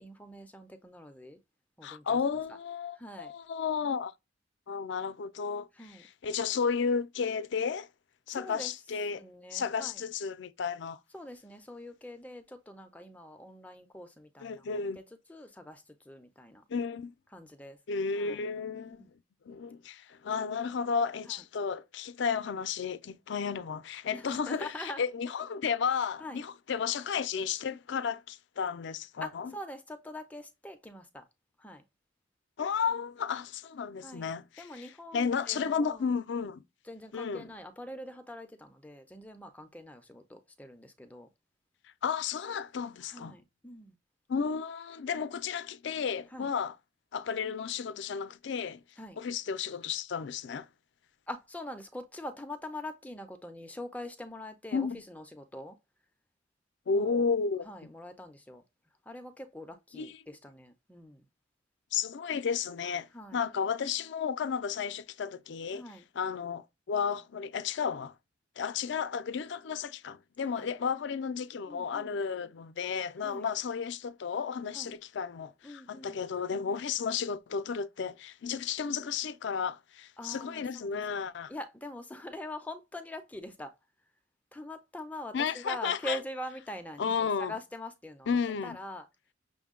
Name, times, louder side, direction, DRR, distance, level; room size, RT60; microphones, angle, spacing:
voice 1, 0.0-1.4 1.8-2.2 3.0-3.3 5.7-6.0 8.3-8.7 9.1-10.0 11.1-14.6 15.0-15.1 15.3-16.6 17.3-17.8 18.2-18.4 18.9-19.1 21.3-21.4 24.1-25.0 26.2-26.4 29.2-31.2 31.6-31.8 34.0-34.3 34.6-36.1 36.8-41.3 43.0-44.0 46.3-46.5 49.0-49.2 51.3-55.8 56.9-57.2 57.6-58.6 59.1-61.3 63.1-63.4 65.7-66.0 70.5-70.7 71.7-72.2 72.4-72.5 73.2-73.5 74.7-74.9 75.6-76.2 76.7-76.8 80.2-83.7 84.5-88.3 88.6-89.1, left 1 dB, 10° left, 0.4 m, -44 dB
voice 2, 1.8-4.1 4.7-7.9 8.3-9.3 9.5-11.0 14.4-15.0 16.7-17.1 17.9-19.1 19.5-29.5 32.6-36.6 37.1-37.5 42.0-43.4 44.3-46.8 47.1-48.8 49.2-50.7 54.7-55.0 56.9-57.7 59.9-60.2 61.9-65.8 66.1-68.1 68.6-81.5 85.3-86.2 87.0-87.6 88.3-88.8, left 6 dB, 65° left, 0.4 m, -33 dB
6.2 x 2.2 x 3.6 m
head